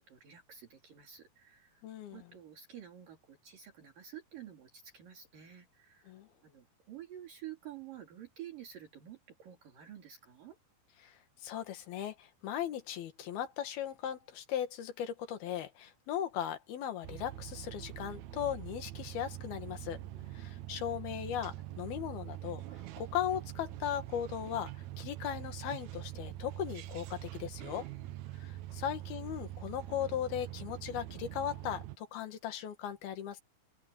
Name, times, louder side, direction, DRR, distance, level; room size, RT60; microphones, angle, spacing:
voice 1, 0.0-1.8 2.1-6.1 6.4-10.6 20.1-20.6 27.7-28.5, right 10 dB, 65° right, 4.5 m, -50 dB
voice 2, 1.8-2.3 6.1-6.3 11.0-20.0 20.3-27.9 28.4-33.4, left 10 dB, 80° left, 3.6 m, -38 dB
sound 1, 17.0-32.0, right 14 dB, 80° right, 1.6 m, -44 dB
open air
omnidirectional pair, 4.4 m